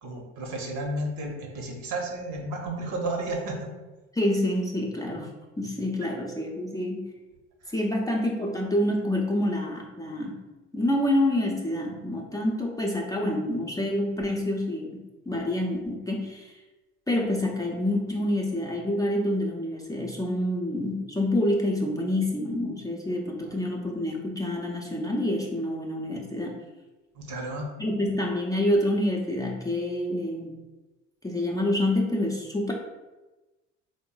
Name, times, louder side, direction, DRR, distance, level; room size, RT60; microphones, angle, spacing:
voice 1, 0.0-3.7 7.6-7.7 27.1-27.7, right 1 dB, 55° right, 2 dB, 0.9 m, -32 dB
voice 2, 4.1-5.3 5.6-7.1 7.7-10.4 10.7-16.5 17.1-26.6 27.8-30.5 31.2-32.7, left 1 dB, 10° left, -2 dB, 0.6 m, -27 dB
3.7 x 2.1 x 3.8 m, 1.1 s
hypercardioid pair, 60°, 35 cm